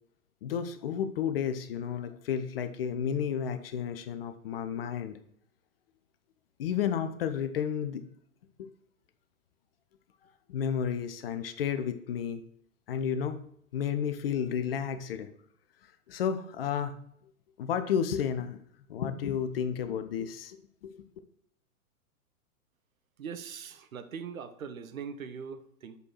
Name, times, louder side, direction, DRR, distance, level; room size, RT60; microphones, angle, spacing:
voice 1, 0.4-5.2 6.6-8.0 8.6-8.7 10.5-12.4 12.9-13.4 13.7-15.3 16.1-17.0 17.6-18.6 18.9-20.6 20.8-20.9, left 8 dB, 40° left, 9 dB, 0.6 m, -32 dB
voice 2, 23.2-26.0, right 6 dB, 65° right, 11 dB, 0.8 m, -41 dB
6.4 x 5.2 x 4.4 m, 0.68 s
figure-of-eight pair, 110°, 45 cm